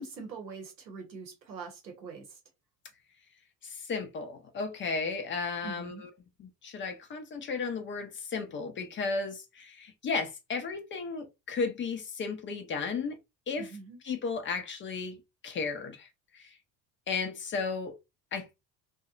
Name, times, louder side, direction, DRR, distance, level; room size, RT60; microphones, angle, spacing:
voice 1, 0.0-2.3 5.6-6.0 13.6-14.0, right 4 dB, 90° right, 0.8 m, -43 dB
voice 2, 3.6-6.1 6.4-13.2 13.5-13.7 14.0-15.2 15.4-16.1 16.3-16.5 17.1-17.9 18.3-18.6, left 4 dB, 25° left, 0.4 m, -34 dB
2.7 x 2.2 x 2.4 m
figure-of-eight pair, 60°, 50 cm